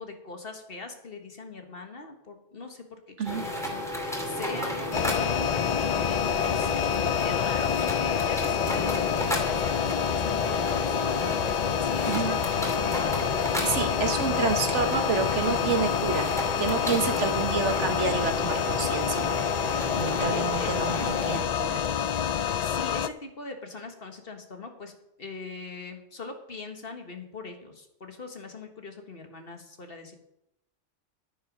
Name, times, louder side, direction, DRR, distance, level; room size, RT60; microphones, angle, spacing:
voice 1, 0.0-6.7 7.2-11.3 11.8-13.1 20.1-20.7 22.6-24.9 25.2-30.2, left 3 dB, 50° left, 5 dB, 1.7 m, -41 dB
sound 1, 3.2-21.4, equal, ahead, 2.4 m, -33 dB
sound 2, 4.9-23.1, left 9 dB, 85° left, 0.3 m, -27 dB
voice 2, 12.0-12.4 13.6-16.3 16.6-19.3 20.0-21.8, right 5 dB, 70° right, 7 dB, 1.5 m, -29 dB
10.5 x 10.0 x 5.2 m, 0.82 s
omnidirectional pair, 1.2 m